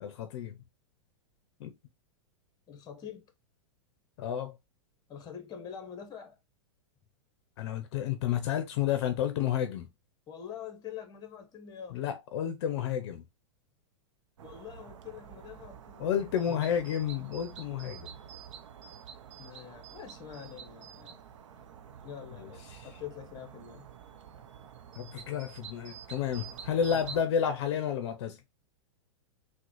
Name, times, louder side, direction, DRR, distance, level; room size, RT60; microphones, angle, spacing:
voice 1, 0.0-0.6 1.6-1.7 4.2-4.6 7.6-9.9 11.9-13.2 16.0-18.1 22.4-22.9 25.0-28.4, left 9 dB, 60° left, 0.5 m, -31 dB
voice 2, 2.7-3.3 5.1-6.4 10.3-12.0 14.4-16.2 19.4-21.2 22.0-23.9, left 8 dB, 25° left, 0.9 m, -45 dB
sound 1, 14.4-27.2, right 8 dB, 75° right, 0.6 m, -48 dB
3.8 x 2.1 x 3.0 m
hypercardioid pair, 115°, 16 cm